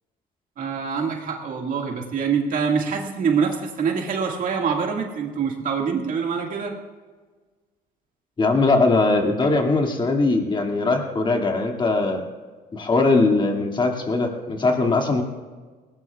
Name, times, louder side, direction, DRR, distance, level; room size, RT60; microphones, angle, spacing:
voice 1, 0.6-6.8, right 6 dB, 55° right, 1 dB, 2.0 m, -25 dB
voice 2, 8.4-12.2 12.7-15.2, left 3 dB, 30° left, 2 dB, 2.3 m, -20 dB
20.0 x 18.0 x 2.4 m, 1.4 s
cardioid pair, 110°, 17 cm